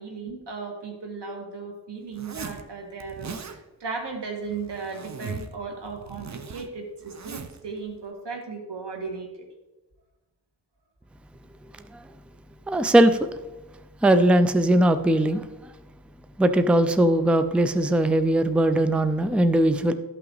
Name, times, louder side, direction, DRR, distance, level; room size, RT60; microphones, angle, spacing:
voice 1, 0.0-9.5, right 4 dB, 90° right, 1 dB, 1.9 m, -36 dB
Zipper (clothing), 2.1-2.6 3.0-3.6 4.4-5.6 5.8-7.6, right 5 dB, 45° right, 0.7 m, -39 dB
voice 2, 12.7-13.2 14.0-15.4 16.4-19.9, right 1 dB, 5° right, 10 dB, 0.4 m, -19 dB
13.0 x 5.7 x 4.0 m, 1.1 s
wide cardioid pair, 110°, 41 cm